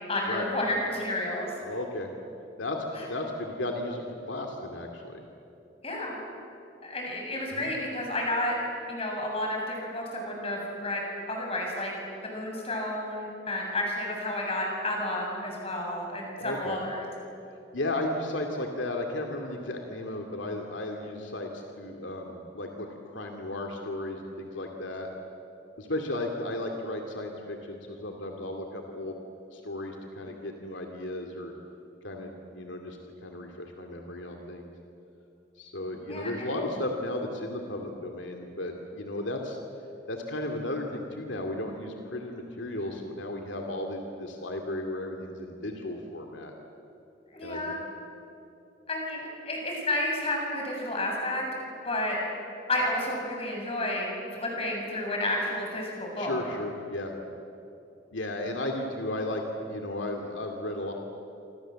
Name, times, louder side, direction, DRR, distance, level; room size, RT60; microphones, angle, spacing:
voice 1, 0.1-1.5 5.8-6.2 6.8-8.5 8.9-11.0 11.3-11.9 12.2-17.0 36.1-36.6 47.3-47.8 48.9-51.5 51.8-52.2 52.7-56.4, left 1 dB, 30° left, 0 dB, 7.2 m, -31 dB
voice 2, 1.6-2.1 2.6-5.2 7.5-7.7 16.4-16.8 17.7-25.1 25.8-29.2 29.5-31.5 32.0-34.7 35.6-39.6 40.1-46.5 47.4-47.7 56.2-57.1 58.1-60.9, left 1 dB, 75° left, 3 dB, 2.5 m, -34 dB
27.0 x 27.0 x 7.7 m, 2.9 s
head